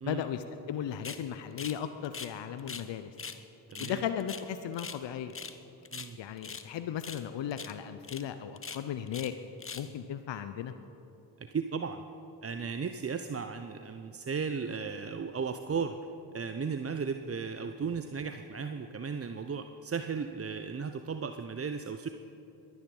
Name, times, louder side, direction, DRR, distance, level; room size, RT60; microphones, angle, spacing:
voice 1, 0.1-3.1 3.8-5.3 6.2-9.3 9.7-10.7, left 9 dB, 60° left, 9 dB, 0.8 m, -36 dB
sound 1, 1.0-1.2 1.6-2.9 3.2-3.4 3.7-5.0 5.3-5.6 5.8-6.7 7.0-7.3 7.5-7.7 8.0-8.2 8.6-9.3 9.6-9.9, left 5 dB, 25° left, 1.0 m, -42 dB
voice 2, 3.7-4.0 5.9-6.2 11.5-12.0 12.4-16.0 16.3-22.1, right 5 dB, 30° right, 8 dB, 0.7 m, -35 dB
22.0 x 9.6 x 5.5 m, 2.9 s
hypercardioid pair, 40°, 49 cm